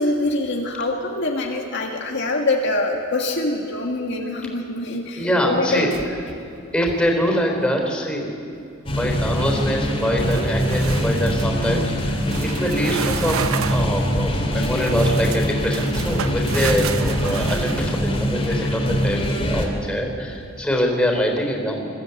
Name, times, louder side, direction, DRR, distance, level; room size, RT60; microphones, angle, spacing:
voice 1, 0.0-6.0, left 2 dB, 60° left, 1 dB, 1.6 m, -24 dB
voice 2, 5.2-5.9 6.7-8.3 8.9-12.2 12.6-21.9, equal, 5° left, 1 dB, 3.9 m, -24 dB
sound 1, 5.9-6.4 6.7-7.1 10.2-11.5 12.2-13.9 14.6-18.5, right 7 dB, 90° right, 0.8 m, -31 dB
sound 2, 8.9-19.7, equal, 25° left, 2.7 m, -23 dB
22.0 x 14.5 x 8.3 m, 2.5 s
head